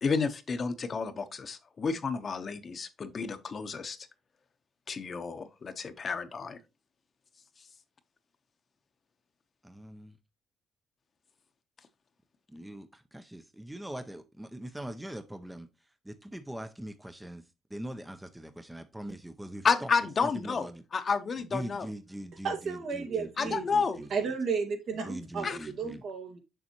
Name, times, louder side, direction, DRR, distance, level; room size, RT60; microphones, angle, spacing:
voice 1, 0.0-4.0 4.9-6.6 19.6-20.7 20.9-21.9 23.4-24.0 25.4-25.6, left 5 dB, 45° left, 0.9 m, -30 dB
voice 2, 9.6-10.1 12.5-15.7 16.0-17.4 17.7-19.9 20.2-20.8 21.5-24.1 25.0-26.0, right 1 dB, 10° right, 0.6 m, -42 dB
voice 3, 22.4-23.6 24.0-26.4, right 5 dB, 70° right, 1.9 m, -33 dB
6.8 x 6.1 x 2.9 m
cardioid pair, 90°, 0 cm